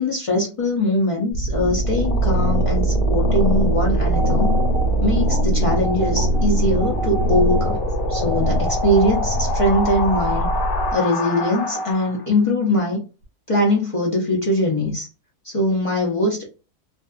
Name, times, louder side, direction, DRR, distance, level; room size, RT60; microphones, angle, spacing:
voice 1, 0.0-4.5 5.0-7.8 8.1-10.5 10.9-13.0 13.5-15.1 15.4-16.5, left 1 dB, 55° left, -2 dB, 0.3 m, -21 dB
sound 1, 1.3-12.3, right 1 dB, 90° left, 1.2 m, -21 dB
sound 2, 4.1-11.9, right 2 dB, 80° right, 1.1 m, -31 dB
2.6 x 2.3 x 2.3 m, 0.32 s
omnidirectional pair, 1.6 m